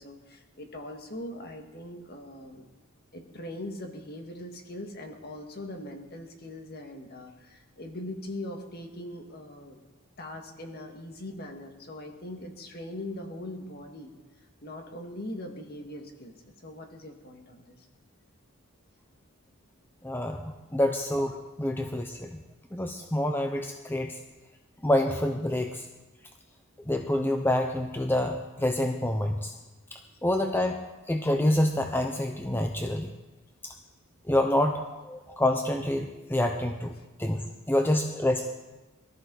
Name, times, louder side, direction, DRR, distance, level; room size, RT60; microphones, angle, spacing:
voice 1, 0.0-2.7 3.1-9.8 10.2-14.1 14.6-17.8, left 1 dB, 45° left, 3 dB, 2.0 m, -41 dB
voice 2, 20.0-22.4 22.7-24.2 24.8-25.9 26.9-29.5 29.9-33.1 33.6-33.7 34.3-38.5, left 1 dB, 10° left, 5 dB, 0.7 m, -27 dB
22.5 x 13.5 x 4.1 m, 1.1 s
head